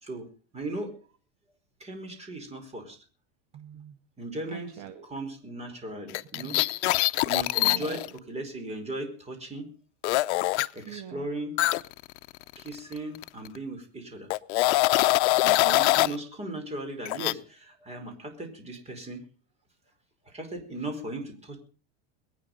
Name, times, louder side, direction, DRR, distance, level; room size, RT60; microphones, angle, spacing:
voice 1, 0.5-0.9 1.8-3.0 4.2-4.7 5.0-6.6 7.2-9.7 10.7-11.6 12.6-14.3 15.8-19.2 20.3-21.6, right 1 dB, 20° right, 5 dB, 4.7 m, -37 dB
voice 2, 3.5-4.0 4.5-5.1 6.3-6.6 7.6-8.0 10.8-11.3 15.4-15.9, right 10 dB, 50° right, 8 dB, 1.5 m, -42 dB
sound 1, 6.1-8.1 10.0-10.7 11.6-13.0 13.2-13.5 14.3-16.1 17.1-17.3, left 20 dB, 75° left, 0.8 m, -24 dB
22.0 x 9.4 x 5.4 m, 0.40 s
supercardioid pair, 140°, 35 cm